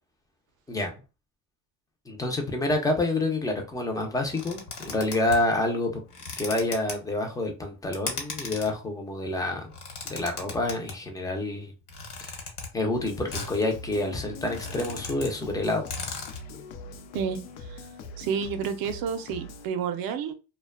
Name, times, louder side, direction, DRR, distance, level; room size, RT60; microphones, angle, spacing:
voice 1, 2.1-6.0 6.4-9.7 10.0-11.7 12.2-12.3 12.7-15.9, left 2 dB, 10° left, 0.4 m, -28 dB
sound 1, 4.3-5.5 6.1-6.9 7.9-8.7 9.6-11.0 11.9-12.7 13.3-13.6 14.0-14.1 14.3-15.3 15.6-15.7 15.9-16.4, left 4 dB, 65° left, 1.1 m, -36 dB
sound 2, 12.9-19.7, left 2 dB, 85° left, 0.6 m, -42 dB
voice 2, 18.2-20.3, right 7 dB, 55° right, 0.5 m, -30 dB
2.4 x 2.2 x 2.3 m
cardioid pair, 125°, 44 cm